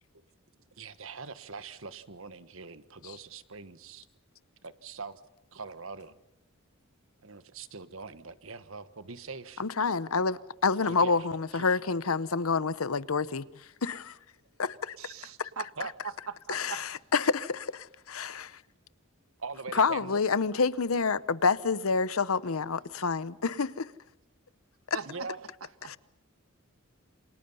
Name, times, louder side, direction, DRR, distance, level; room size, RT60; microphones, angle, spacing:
voice 1, 0.8-4.1 4.6-5.2 5.5-6.2 7.2-9.6 10.9-11.1 11.5-11.6 15.8-15.9 19.4-20.2 25.1-25.4, right 4 dB, 70° right, 1.4 m, -42 dB
voice 2, 9.6-14.2 14.6-15.0 15.4-15.5 16.5-18.6 19.7-23.9 24.9-25.0 25.8-26.0, left 4 dB, 80° left, 0.9 m, -28 dB
voice 3, 15.0-16.8 24.9-25.3 25.6-25.9, right 6 dB, 85° right, 1.5 m, -41 dB
28.5 x 27.0 x 5.6 m
head